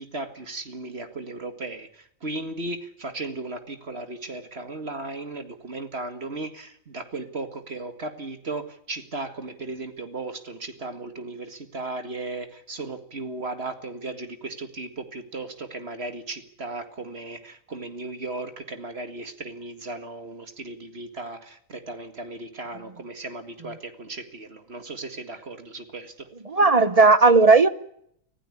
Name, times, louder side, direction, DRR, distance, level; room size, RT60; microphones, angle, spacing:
voice 1, 0.0-26.3, right 2 dB, 50° right, 2.2 m, -36 dB
voice 2, 26.5-27.7, right 3 dB, 30° right, 1.0 m, -15 dB
25.5 x 15.5 x 10.0 m
omnidirectional pair, 1.4 m